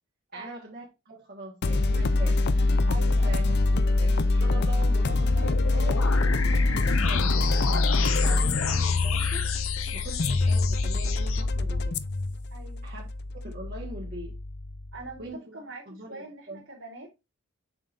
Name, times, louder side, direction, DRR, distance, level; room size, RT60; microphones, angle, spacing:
voice 1, 0.3-2.4 3.2-3.4 3.9-9.5 9.9-12.0 12.8-13.0 13.4-14.3 15.2-16.6, right 1 dB, 45° right, 1.4 m, -42 dB
sound 1, 1.6-15.0, left 2 dB, 50° left, 0.5 m, -25 dB
voice 2, 2.9-3.4 10.0-10.2 12.5-12.8 14.9-15.3 15.5-17.1, right 2 dB, 75° right, 3.0 m, -43 dB
sound 2, 5.4-11.4, left 6 dB, 70° left, 0.9 m, -32 dB
7.4 x 5.7 x 2.5 m
head